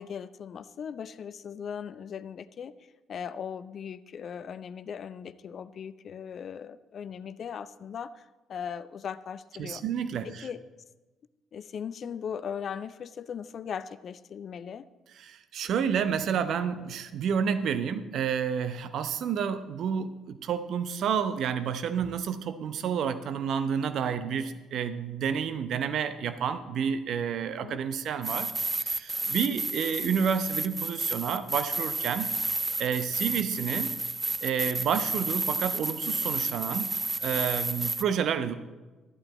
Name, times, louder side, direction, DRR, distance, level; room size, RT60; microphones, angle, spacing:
voice 1, 0.0-2.7 3.1-9.8 10.2-10.6 11.5-14.9 27.6-27.8, left 7 dB, 50° left, 15 dB, 0.4 m, -38 dB
voice 2, 9.6-10.5 15.2-32.3 32.8-33.9 34.4-38.5, right 7 dB, 55° right, 12 dB, 0.7 m, -30 dB
sound 1, 28.2-38.0, right 2 dB, 20° right, 0.4 m, -31 dB
12.5 x 11.5 x 4.1 m, 1.2 s
figure-of-eight pair, 45°, 0 cm